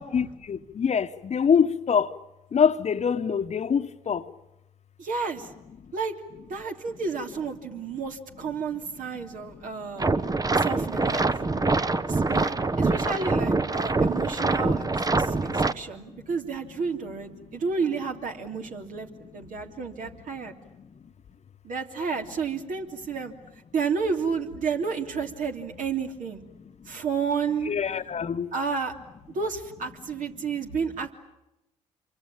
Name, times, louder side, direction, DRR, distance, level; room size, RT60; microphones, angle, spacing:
voice 1, 0.1-2.1 2.5-4.2 27.7-28.5, left 7 dB, 45° left, 1.3 m, -24 dB
voice 2, 5.0-5.5 5.9-6.1 6.5-10.0 10.5-11.2 12.1-20.5 21.6-23.3 23.7-26.4 26.9-27.7 28.5-28.9 29.3-31.1, right 5 dB, 60° right, 3.3 m, -31 dB
sound 1, 10.0-15.7, right 3 dB, 25° right, 1.2 m, -24 dB
27.0 x 24.5 x 9.0 m
hypercardioid pair, 50°, 16 cm